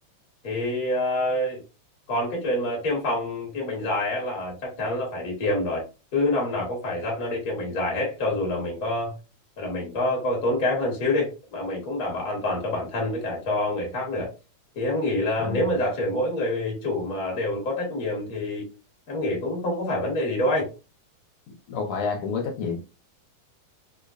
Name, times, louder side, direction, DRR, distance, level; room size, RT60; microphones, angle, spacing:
voice 1, 0.4-1.6 2.1-5.8 6.1-9.1 9.6-14.3 14.7-18.6 19.1-20.7, left 1 dB, 50° left, 1.0 m, -26 dB
voice 2, 21.7-22.8, left 5 dB, 75° left, 1.8 m, -29 dB
4.9 x 2.1 x 2.3 m
omnidirectional pair, 3.3 m